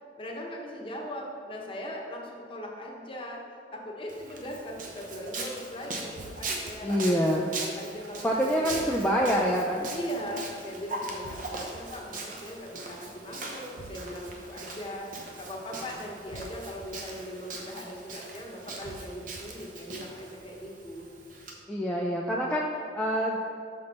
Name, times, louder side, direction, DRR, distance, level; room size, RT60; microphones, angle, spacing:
voice 1, 0.2-3.4 3.7-9.0 9.9-21.1, equal, 30° left, -1 dB, 1.0 m, -39 dB
Walk footsteps, 4.1-21.5, right 2 dB, 45° right, 0.9 m, -40 dB
sound 1, 6.2-6.7 8.7-9.3 11.2-11.8 13.8-14.3 16.3-16.9 18.8-19.4, right 2 dB, 70° right, 0.6 m, -45 dB
voice 2, 6.8-7.5 8.2-9.9 21.7-23.4, equal, 5° left, -2 dB, 0.4 m, -26 dB
6.4 x 6.0 x 4.2 m, 2.7 s
head